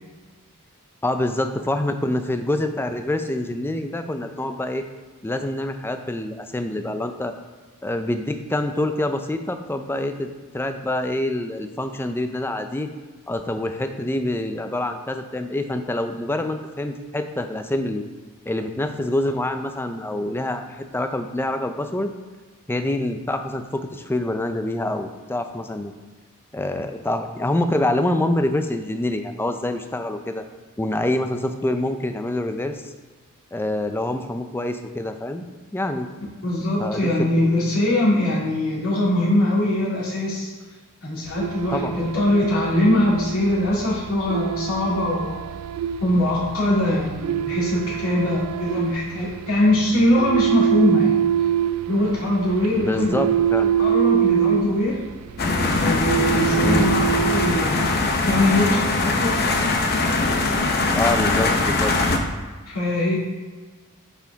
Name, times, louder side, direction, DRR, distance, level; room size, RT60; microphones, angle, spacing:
voice 1, 1.0-4.9 5.2-7.3 7.8-12.9 13.3-18.0 18.5-22.1 22.7-25.9 26.5-30.4 30.8-32.9 33.5-35.4 35.7-36.1 36.8-37.3 41.7-42.1 52.8-53.8 56.6-57.0 60.9-62.2, left 1 dB, 10° left, 7 dB, 0.4 m, -26 dB
voice 2, 36.4-40.5 41.0-45.4 46.0-51.2 51.9-53.2 53.8-55.0 55.8-57.8 58.2-59.6 62.7-63.2, left 1 dB, 65° left, -6 dB, 2.3 m, -22 dB
sound 1, 41.3-57.9, right 9 dB, 75° right, 0.3 m, -25 dB
sound 2, 55.4-62.2, left 3 dB, 45° left, 0.8 m, -21 dB
8.8 x 4.8 x 3.5 m, 1.4 s
head